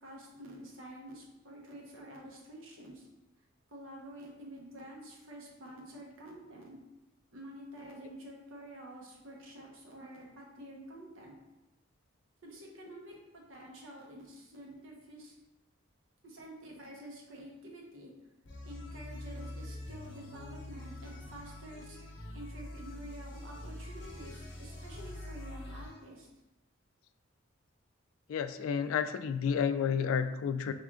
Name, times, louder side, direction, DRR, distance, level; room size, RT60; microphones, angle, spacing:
voice 1, 0.0-3.1 3.7-6.8 7.3-11.3 12.4-15.3 16.2-18.1 18.6-22.0 22.3-26.3, right 1 dB, 80° right, -2 dB, 1.0 m, -49 dB
sound 1, 18.5-26.0, left 1 dB, 60° left, 0.8 m, -45 dB
voice 2, 28.3-30.7, left 7 dB, 90° left, 11 dB, 0.3 m, -31 dB
3.6 x 3.5 x 3.6 m, 0.98 s
head